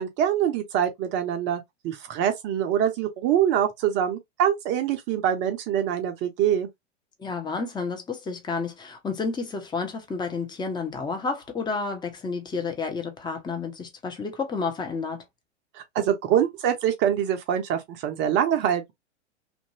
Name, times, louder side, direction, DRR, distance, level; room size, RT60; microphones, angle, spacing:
voice 1, 0.0-6.7 15.7-18.9, right 9 dB, 30° right, 0.7 m, -24 dB
voice 2, 7.2-15.2, left 4 dB, 10° left, 0.8 m, -30 dB
2.9 x 2.6 x 2.6 m
figure-of-eight pair, 90°, 36 cm